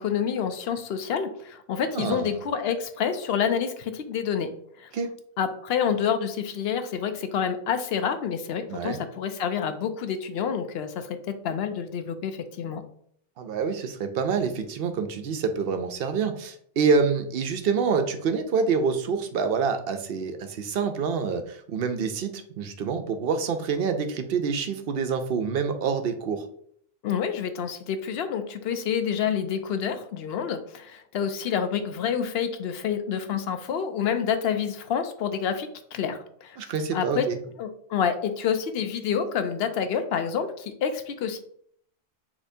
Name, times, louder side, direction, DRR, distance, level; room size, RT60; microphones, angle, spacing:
voice 1, 0.0-4.5 4.8-4.9 5.4-11.2 11.4-12.8 27.0-36.6 36.9-37.3 37.6-41.4, left 7 dB, 75° left, 8 dB, 0.8 m, -28 dB
voice 2, 1.9-2.4 4.9-5.1 8.7-9.0 13.4-26.5 36.6-37.4, right 5 dB, 70° right, 8 dB, 0.7 m, -27 dB
6.4 x 3.0 x 2.6 m, 0.64 s
omnidirectional pair, 1.1 m